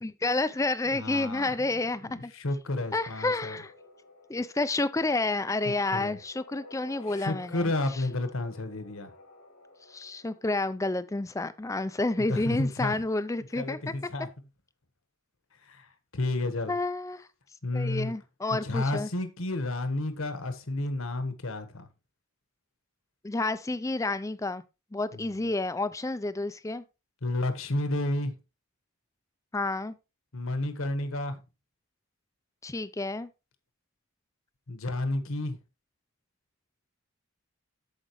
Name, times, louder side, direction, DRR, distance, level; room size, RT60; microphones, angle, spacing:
voice 1, 0.0-2.3 2.9-3.7 4.3-8.0 9.9-13.9 16.7-17.3 17.7-19.1 23.2-24.6 24.9-26.8 29.5-29.9 32.6-33.3, left 2 dB, 15° left, 0.4 m, -30 dB
voice 2, 0.9-1.5 2.0-3.6 5.6-6.2 7.1-9.1 12.2-13.0 13.6-14.3 15.6-16.8 17.6-18.1 18.5-21.9 25.1-25.5 27.2-28.3 30.3-31.4 34.7-35.6, left 2 dB, 65° left, 1.3 m, -31 dB
sound 1, 2.7-11.3, left 2 dB, 85° left, 2.1 m, -53 dB
13.5 x 5.1 x 3.0 m
head